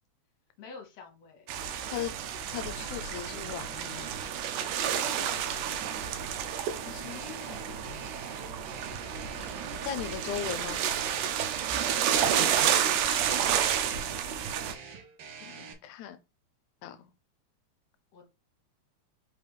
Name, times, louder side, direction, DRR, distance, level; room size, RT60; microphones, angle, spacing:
voice 1, 0.6-1.5 2.0-2.2 4.9-6.0 12.4-13.5 13.9-14.2 16.8-17.1 18.1-18.2, left 6 dB, 65° left, 2.3 m, -48 dB
sound 1, 1.5-14.7, right 9 dB, 90° right, 2.2 m, -30 dB
voice 2, 2.5-4.1 6.9-8.1 9.8-10.8 15.4-16.2 16.8-17.0, left 10 dB, 80° left, 2.0 m, -38 dB
sound 2, 7.0-15.7, right 6 dB, 70° right, 1.5 m, -46 dB
5.1 x 3.3 x 3.1 m
omnidirectional pair, 3.4 m